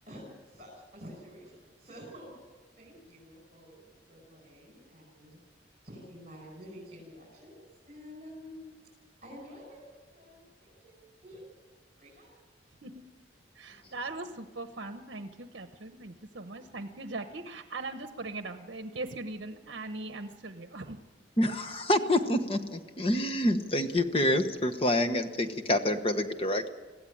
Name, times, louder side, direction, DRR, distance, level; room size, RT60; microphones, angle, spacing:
voice 1, 0.1-3.8 4.1-5.4 5.8-7.6 7.9-8.7 9.2-11.0 11.2-11.4 12.0-12.3, equal, 35° right, -3 dB, 5.7 m, -49 dB
voice 2, 13.5-21.0, right 2 dB, 60° right, 7 dB, 1.0 m, -40 dB
voice 3, 21.4-26.7, left 1 dB, 30° left, 8 dB, 1.1 m, -27 dB
22.0 x 15.5 x 8.6 m, 1.3 s
head